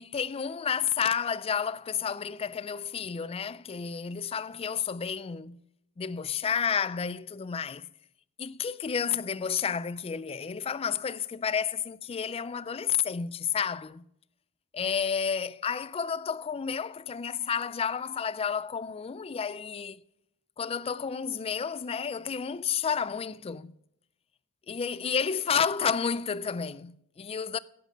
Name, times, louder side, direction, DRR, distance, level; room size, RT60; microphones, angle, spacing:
voice 1, 0.0-5.6 6.0-7.9 8.4-14.0 14.7-20.0 20.6-23.7 24.7-27.6, left 7 dB, 25° left, 0.3 m, -31 dB
10.5 x 8.7 x 7.4 m
head